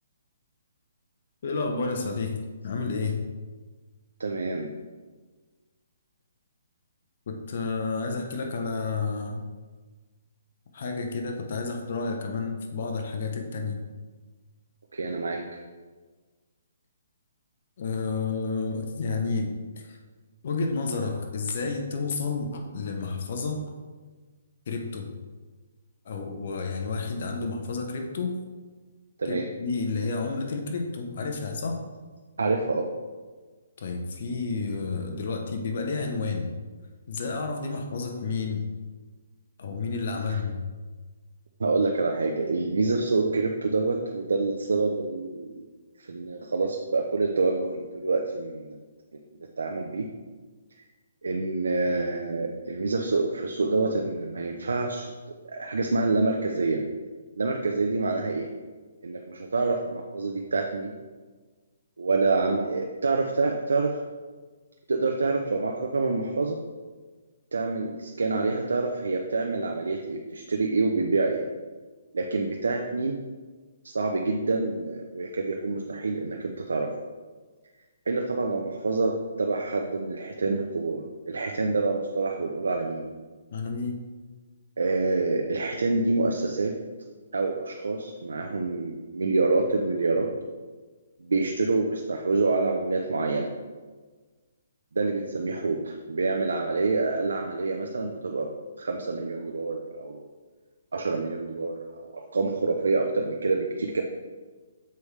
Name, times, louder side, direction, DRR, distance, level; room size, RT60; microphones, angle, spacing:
voice 1, 1.4-3.2 7.3-9.5 10.7-13.8 17.8-20.0 20.4-23.6 24.7-25.1 26.0-28.4 29.2-31.8 33.8-36.5 37.1-38.6 39.6-40.6 83.5-84.0, left 4 dB, 55° left, 4 dB, 0.8 m, -30 dB
voice 2, 4.2-4.7 14.9-15.6 29.2-29.5 32.4-32.9 40.3-40.4 41.6-45.6 46.0-48.8 49.1-49.2 49.6-50.1 50.8-50.9 51.2-55.1 55.4-56.8 57.4-58.5 59.0-60.9 62.0-64.0 64.9-66.6 67.5-71.4 72.1-73.2 73.8-76.9 78.1-79.1 79.4-83.1 84.8-86.7 87.3-90.3 91.2-93.5 94.9-98.5 98.8-100.3 100.9-104.0, right 3 dB, 90° right, 2 dB, 0.6 m, -27 dB
6.9 x 4.8 x 3.2 m, 1.4 s
hypercardioid pair, 155°, 0 cm